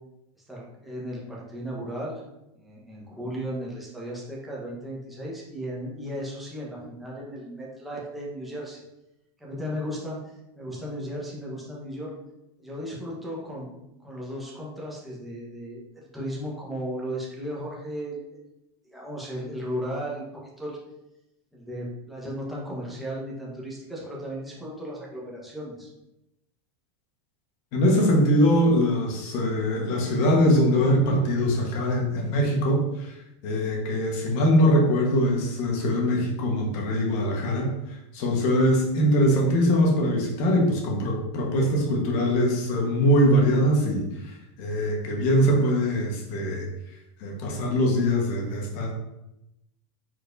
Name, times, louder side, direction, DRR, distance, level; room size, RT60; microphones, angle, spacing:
voice 1, 0.5-2.2 2.6-8.8 9.4-12.1 12.6-13.7 14.0-18.4 18.8-20.8 21.5-25.9, equal, ahead, -5 dB, 1.1 m, -35 dB
voice 2, 27.7-33.1 33.4-37.7 38.1-46.7 47.2-48.9, equal, 50° left, 0 dB, 1.3 m, -22 dB
4.5 x 4.4 x 2.6 m, 0.90 s
supercardioid pair, 135°, 15 cm